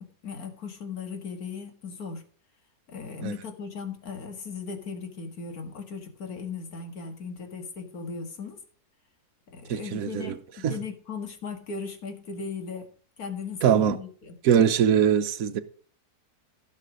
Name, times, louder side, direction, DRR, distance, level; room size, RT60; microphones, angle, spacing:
voice 1, 0.0-2.2 2.9-8.6 9.5-12.9 13.2-14.4, left 5 dB, 65° left, 2.2 m, -37 dB
voice 2, 9.7-10.4 10.6-10.8 13.6-14.0 14.4-15.6, right 8 dB, 65° right, 1.3 m, -22 dB
15.5 x 6.6 x 5.0 m
omnidirectional pair, 1.7 m